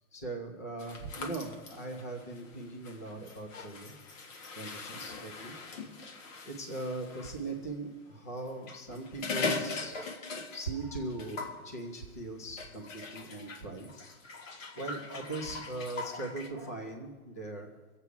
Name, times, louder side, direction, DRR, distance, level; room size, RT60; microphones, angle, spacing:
voice 1, 0.1-4.0 4.5-5.5 6.4-9.9 10.5-14.1 14.7-17.7, right 2 dB, 15° left, 3 dB, 0.3 m, -40 dB
sound 1, 0.8-7.4 8.5-10.8 11.1-11.6 12.6-16.5, left 4 dB, 60° left, 1.7 m, -40 dB
22.5 x 8.1 x 4.7 m, 1.4 s
hypercardioid pair, 155°, 45 cm